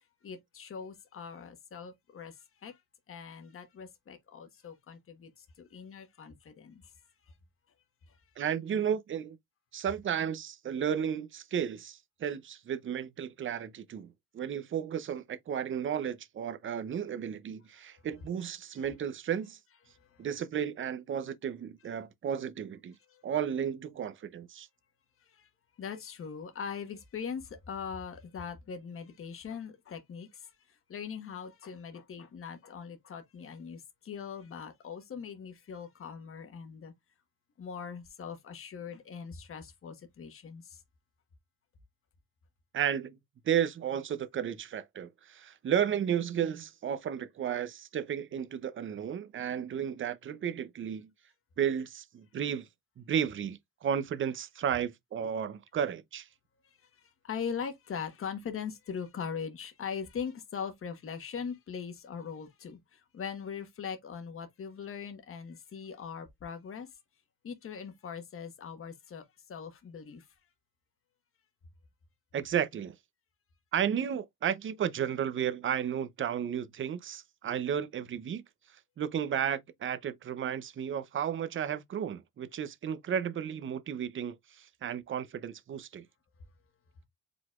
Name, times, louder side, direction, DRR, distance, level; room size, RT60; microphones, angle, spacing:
voice 1, 0.2-2.8 3.1-6.9 7.3-7.4 8.1-8.2 17.7-17.9 18.7-18.8 19.9-20.3 23.1-23.2 25.2-25.5 25.8-36.9 37.6-40.8 56.6-66.9 67.4-70.3, left 6 dB, 40° left, 1.3 m, -41 dB
voice 2, 8.4-9.4 9.7-14.1 14.3-19.6 20.2-23.0 23.2-24.7 42.7-43.2 43.4-51.1 51.6-52.7 53.0-56.3 72.3-72.9 73.7-78.4 79.0-86.0, right 8 dB, 35° right, 0.6 m, -33 dB
5.0 x 3.9 x 2.4 m
cardioid pair, 105°, 34 cm